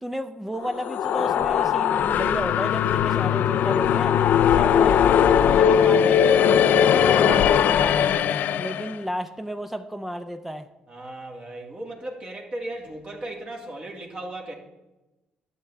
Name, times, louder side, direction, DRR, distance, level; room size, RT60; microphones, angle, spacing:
voice 1, 0.0-4.2 4.5-5.0 5.5-8.3 8.6-10.7, equal, 5° right, 8 dB, 0.5 m, -32 dB
sound 1, 0.6-8.9, left 8 dB, 70° left, 0.3 m, -19 dB
voice 2, 10.9-14.5, right 1 dB, 40° right, -1 dB, 2.1 m, -36 dB
12.0 x 7.1 x 3.4 m, 1.0 s
cardioid pair, 85°, 3 cm